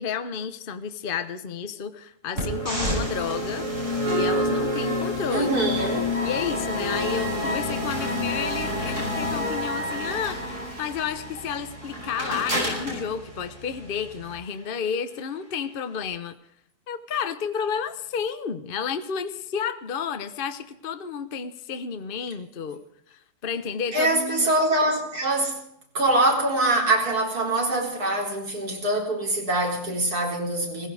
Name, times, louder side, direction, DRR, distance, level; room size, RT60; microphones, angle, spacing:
voice 1, 0.0-3.7 4.1-5.6 6.2-16.3 16.9-22.8 23.1-24.5, left 7 dB, 40° left, 10 dB, 1.0 m, -31 dB
sound 1, 2.3-14.3, left 1 dB, 50° right, 8.1 m, -28 dB
voice 2, 5.3-6.1 9.1-9.7 23.9-25.6 25.9-30.9, right 2 dB, 80° right, 0 dB, 4.5 m, -24 dB
17.5 x 15.5 x 4.9 m, 0.75 s
omnidirectional pair, 1.6 m